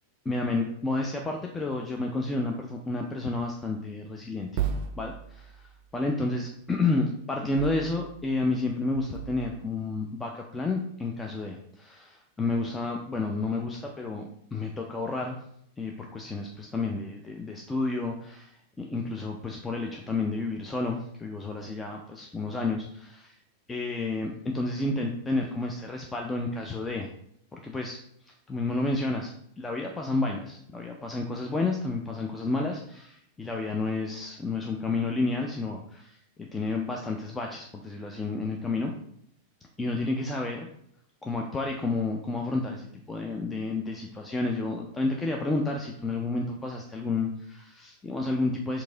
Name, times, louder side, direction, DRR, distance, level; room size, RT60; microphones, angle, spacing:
voice 1, 0.3-4.5 5.0-15.4 15.8-23.3 23.7-27.1 27.5-28.0 28.5-38.9 39.8-40.7 41.2-48.8, left 3 dB, 15° left, 1 dB, 0.4 m, -31 dB
sound 1, 4.6-5.7 7.6-8.5 8.9-9.6, right 8 dB, 45° right, 0.4 m, -35 dB
4.6 x 2.6 x 3.8 m, 0.70 s
figure-of-eight pair, 90°, 0 cm